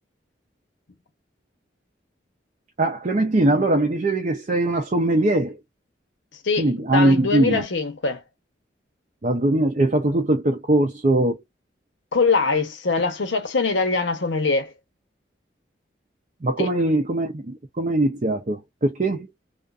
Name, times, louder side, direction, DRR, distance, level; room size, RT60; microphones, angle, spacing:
voice 1, 2.8-5.6 6.6-7.6 9.2-11.4 16.4-19.3, right 1 dB, 40° right, 0.5 m, -21 dB
voice 2, 6.4-8.2 12.1-14.7 16.6-16.7, left 4 dB, 85° left, 0.8 m, -23 dB
2.4 x 2.4 x 2.4 m
head